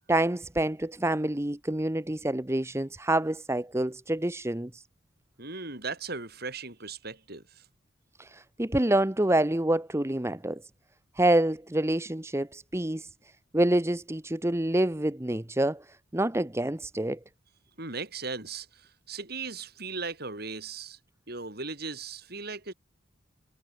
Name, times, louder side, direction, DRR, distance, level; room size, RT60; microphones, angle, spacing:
voice 1, 0.0-4.8 8.2-10.6 11.2-13.1 13.5-15.8 16.1-17.2, right 1 dB, 15° right, 0.9 m, -27 dB
voice 2, 5.4-7.6 17.8-21.0 21.3-22.7, right 4 dB, 55° right, 6.7 m, -37 dB
head